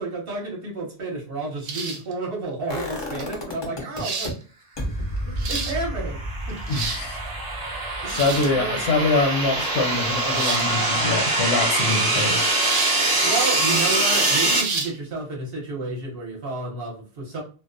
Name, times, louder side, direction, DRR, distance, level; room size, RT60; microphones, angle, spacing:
voice 1, 0.0-4.4 4.8-4.9 5.3-6.2 6.5-6.6 8.0-8.8 10.7-10.9 11.9-12.3 13.2-17.4, right 3 dB, 55° right, -2 dB, 0.9 m, -31 dB
sound 1, 1.6-2.1 3.2-3.3 4.0-4.3 5.2-5.8 6.5-7.1 8.0-8.6 10.3-10.7 12.6-13.0 13.4-13.5 14.5-14.9, right 4 dB, 80° right, 0.9 m, -30 dB
sound 2, 2.7-4.3 4.8-10.6 10.9-11.0, equal, 40° left, 0.3 m, -33 dB
sound 3, 5.6-14.6, right 2 dB, 25° right, 0.5 m, -23 dB
voice 2, 6.7-7.2 7.8-12.5, left 3 dB, 75° left, 2 dB, 1.0 m, -24 dB
2.5 x 2.1 x 2.4 m, 0.37 s
omnidirectional pair, 1.3 m